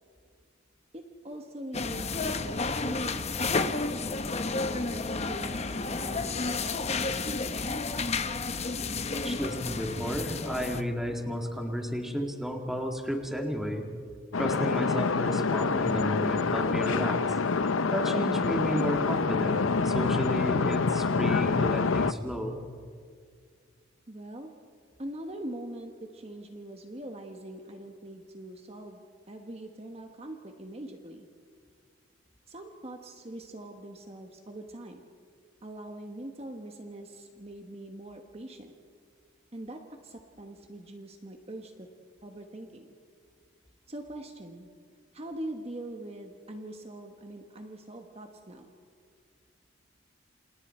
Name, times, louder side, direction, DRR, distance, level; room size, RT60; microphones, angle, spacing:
voice 1, 0.9-3.8 4.5-8.0 24.1-24.5 25.0-29.0 29.3-31.3 32.5-35.0 35.6-38.8 39.5-41.9 42.2-42.9 43.9-44.7 45.1-48.7, right 1 dB, 30° right, 4 dB, 1.3 m, -43 dB
sound 1, 1.7-10.8, left 3 dB, 35° left, 0.9 m, -31 dB
voice 2, 9.1-13.9 14.4-17.2 17.9-22.6, equal, ahead, 2 dB, 2.0 m, -32 dB
sound 2, 14.3-22.1, left 4 dB, 90° left, 0.7 m, -27 dB
28.5 x 28.5 x 4.4 m, 2.1 s
head